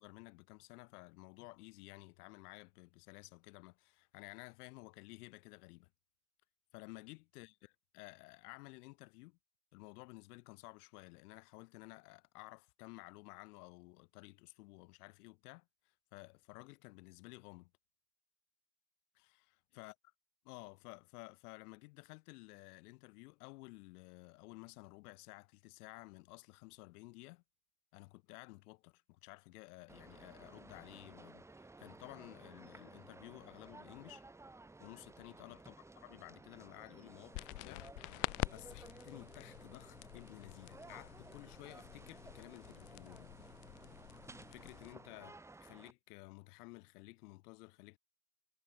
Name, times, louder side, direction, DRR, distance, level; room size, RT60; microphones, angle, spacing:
voice 1, 0.0-5.9 6.7-7.5 7.9-9.4 9.7-17.7 19.1-19.9 20.4-27.4 27.9-31.5 31.8-34.3 34.8-37.9 38.5-43.3 44.5-48.0, left 24 dB, 85° left, 1.0 m, -54 dB
sound 1, 29.9-45.9, right 2 dB, 5° right, 0.6 m, -56 dB
sound 2, 37.3-44.9, left 35 dB, 65° left, 0.7 m, -46 dB
supercardioid pair, 110°, 44 cm